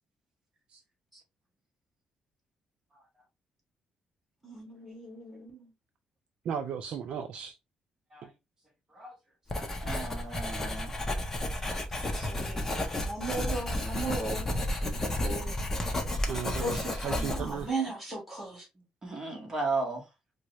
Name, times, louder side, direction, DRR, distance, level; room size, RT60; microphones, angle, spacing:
voice 1, 4.4-5.7 12.0-12.6 13.0-14.8 15.2-15.5 16.6-18.7, right 2 dB, 5° right, 1.6 m, -37 dB
voice 2, 6.5-7.6 8.2-8.3 16.3-17.7, right 7 dB, 60° right, 0.4 m, -35 dB
Writing, 9.5-17.7, left 1 dB, 20° left, 0.7 m, -32 dB
voice 3, 9.8-10.9 19.0-20.0, right 3 dB, 25° right, 1.0 m, -34 dB
4.6 x 2.1 x 2.5 m
cardioid pair, 155°, 2 cm